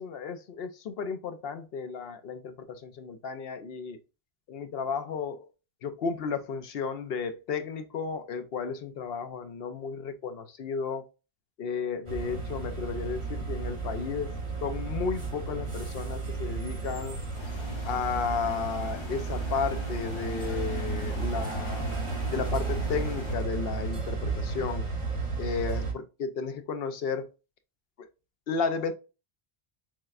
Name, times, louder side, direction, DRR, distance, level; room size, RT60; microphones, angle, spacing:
voice 1, 0.0-4.0 4.5-5.5 5.8-11.1 11.6-14.3 14.6-17.2 17.9-21.9 22.3-24.9 25.4-27.3 28.0-28.1 28.5-28.9, left 5 dB, 70° left, 0.8 m, -33 dB
sound 1, 12.1-25.9, right 4 dB, 30° right, 1.2 m, -33 dB
sound 2, 17.3-23.3, left 2 dB, 35° left, 0.6 m, -44 dB
6.2 x 2.2 x 2.4 m
omnidirectional pair, 1.0 m